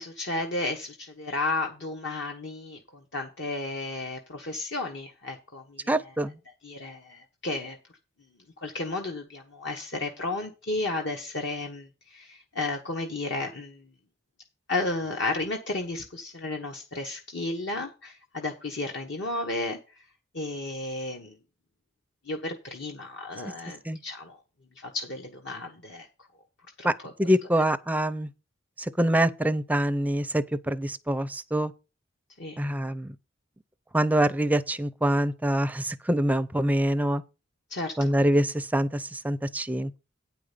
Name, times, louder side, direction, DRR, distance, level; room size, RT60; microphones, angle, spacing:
voice 1, 0.0-2.8 3.1-5.9 6.6-7.8 8.6-13.9 14.7-19.8 20.3-21.4 22.2-24.4 24.8-26.1 26.8-27.1 32.4-32.6 37.7-38.1, left 2 dB, 60° left, 1.2 m, -33 dB
voice 2, 5.9-6.4 23.9-24.0 26.8-26.9 27.2-28.3 28.8-31.7 32.6-33.1 33.9-37.2 38.0-40.0, right 1 dB, 10° right, 0.5 m, -25 dB
9.1 x 5.0 x 6.8 m
head